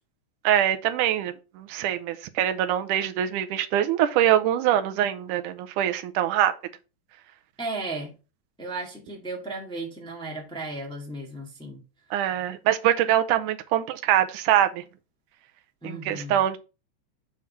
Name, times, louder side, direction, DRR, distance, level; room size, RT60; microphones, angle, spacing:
voice 1, 0.4-6.5 12.1-14.8 15.8-16.6, right 11 dB, 85° right, 2.2 m, -24 dB
voice 2, 7.6-8.1 8.6-11.8 15.8-16.4, right 2 dB, ahead, 1.3 m, -35 dB
7.4 x 3.6 x 5.6 m
omnidirectional pair, 3.6 m